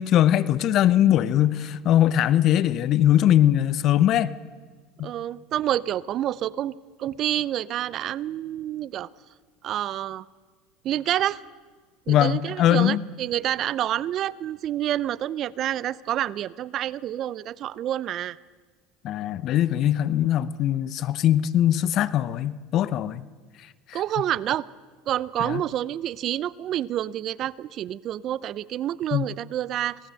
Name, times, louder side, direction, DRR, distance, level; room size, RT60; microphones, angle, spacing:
voice 1, 0.0-4.4 5.0-5.1 12.1-13.0 19.0-23.2 23.9-24.0 25.4-25.6 29.1-29.2, left 11 dB, 50° left, 16 dB, 0.9 m, -21 dB
voice 2, 5.0-6.7 7.0-9.1 9.6-10.2 10.8-11.4 12.1-18.4 23.9-24.7 25.1-30.0, right 12 dB, 50° right, 21 dB, 0.6 m, -28 dB
26.5 x 18.5 x 7.8 m, 1.5 s
hypercardioid pair, 80°, 0 cm